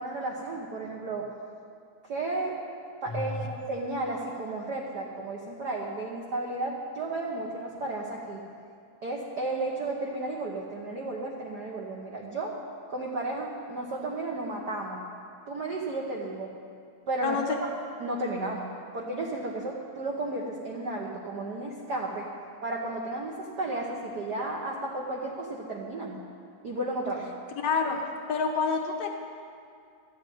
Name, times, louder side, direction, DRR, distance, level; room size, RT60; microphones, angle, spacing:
voice 1, 0.0-1.3 2.0-2.6 3.0-8.4 9.0-12.6 12.9-15.0 15.5-16.5 17.1-17.4 18.0-22.3 22.6-26.2 26.6-27.3, right 2 dB, 65° right, -1 dB, 1.0 m, -33 dB
voice 2, 17.2-17.6 27.6-28.0 28.3-29.2, left 5 dB, 65° left, 2 dB, 1.8 m, -27 dB
13.0 x 7.8 x 9.2 m, 2.4 s
omnidirectional pair, 3.4 m